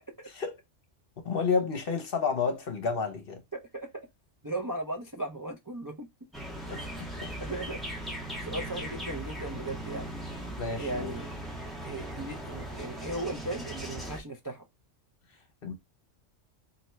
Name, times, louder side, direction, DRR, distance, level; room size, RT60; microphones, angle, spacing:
voice 1, 0.3-0.6 1.2-3.4 6.7-7.3 10.6-11.1 15.6-15.7, left 5 dB, 55° left, 1.0 m, -31 dB
voice 2, 4.4-6.1 6.9-7.1 7.4-7.8 8.4-10.1 10.8-11.3 11.8-14.6, right 2 dB, 25° right, 0.4 m, -37 dB
sound 1, 6.3-14.2, right 1 dB, ahead, 1.2 m, -38 dB
4.3 x 2.7 x 3.2 m
omnidirectional pair, 1.3 m